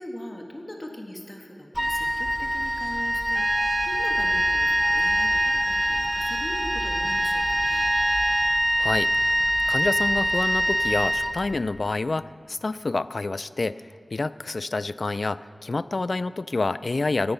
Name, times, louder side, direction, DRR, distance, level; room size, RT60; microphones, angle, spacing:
voice 1, 0.0-7.9, left 1 dB, 30° left, 2 dB, 1.3 m, -40 dB
Wind instrument woodwind instrument, 1.7-11.8, equal, ahead, 0.5 m, -24 dB
Trumpet, 3.4-8.6, right 2 dB, 60° right, 0.8 m, -30 dB
voice 2, 8.8-9.4 9.7-13.8 14.1-17.3, left 3 dB, 60° left, 16 dB, 0.3 m, -28 dB
17.0 x 9.5 x 5.6 m, 2.2 s
wide cardioid pair, 75°, 0 cm